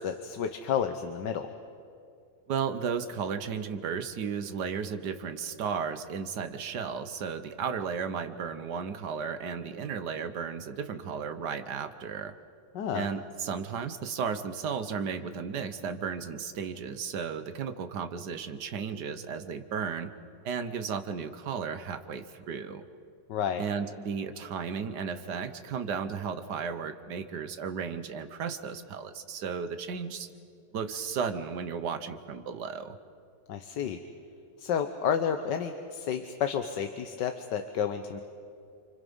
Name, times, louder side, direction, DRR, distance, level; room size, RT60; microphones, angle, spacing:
voice 1, 0.0-1.5 12.7-13.1 23.3-23.6 33.5-34.0 34.6-38.2, left 8 dB, 75° left, 7 dB, 1.6 m, -31 dB
voice 2, 2.5-12.3 12.9-20.1 20.4-22.9 23.6-30.3 30.7-33.0, right 6 dB, 70° right, 9 dB, 1.7 m, -34 dB
30.0 x 25.0 x 5.5 m, 2.5 s
omnidirectional pair, 1.9 m